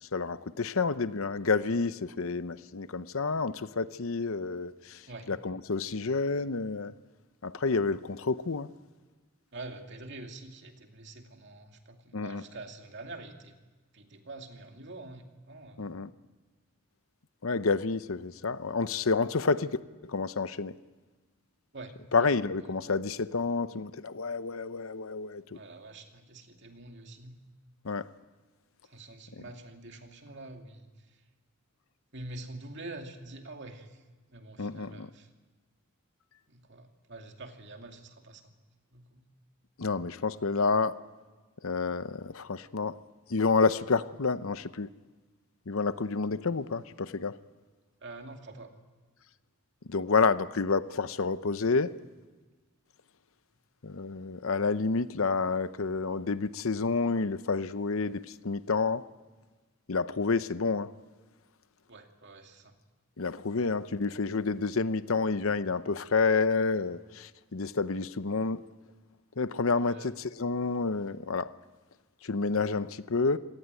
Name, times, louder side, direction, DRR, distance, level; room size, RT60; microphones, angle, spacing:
voice 1, 0.1-5.0 5.3-6.9 7.4-8.7 12.1-12.4 15.8-16.1 17.4-19.7 20.0-20.7 22.1-25.4 27.8-28.1 34.6-35.1 39.8-41.0 41.6-43.0 43.3-44.9 45.7-47.4 49.9-51.9 53.8-59.1 59.9-60.9 63.2-68.6 69.4-71.5 72.2-73.4, left 4 dB, 65° left, 0.7 m, -29 dB
voice 2, 9.5-13.6 13.9-15.9 21.7-22.7 25.5-27.4 28.8-31.2 32.1-34.0 34.3-35.3 36.5-38.5 38.9-39.3 48.0-48.7 61.9-62.7 69.8-70.1, right 2 dB, 55° right, 2.5 m, -46 dB
26.5 x 18.0 x 9.1 m
head